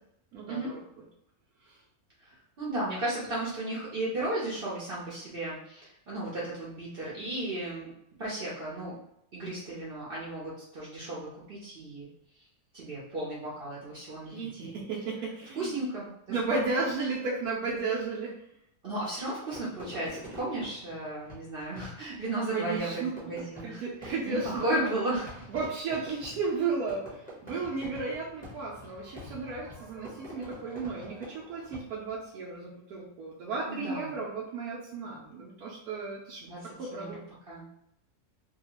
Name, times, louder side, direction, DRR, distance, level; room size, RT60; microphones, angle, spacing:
voice 1, 0.3-0.8 1.6-1.8 14.2-15.8 16.3-18.4 22.5-23.1 23.6-24.9 25.5-37.2, right 4 dB, 85° right, -4 dB, 1.1 m, -34 dB
voice 2, 2.6-7.9 8.2-9.0 9.3-12.1 12.7-14.8 15.6-16.4 18.8-25.3 33.7-34.2 36.4-37.2 37.5-37.6, right 1 dB, 55° right, -6 dB, 0.7 m, -34 dB
Fireworks, 19.5-32.2, equal, 10° left, 0.7 m, -47 dB
2.7 x 2.3 x 2.9 m, 0.77 s
omnidirectional pair, 1.6 m